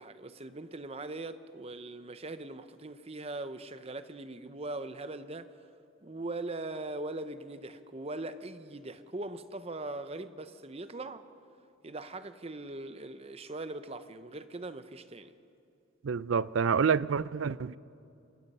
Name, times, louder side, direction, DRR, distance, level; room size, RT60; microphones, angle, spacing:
voice 1, 0.0-5.5 6.0-11.3 11.8-15.3, right 2 dB, 30° right, 0.8 m, -40 dB
voice 2, 16.0-17.8, right 6 dB, 70° right, 0.4 m, -28 dB
27.0 x 20.5 x 5.5 m
head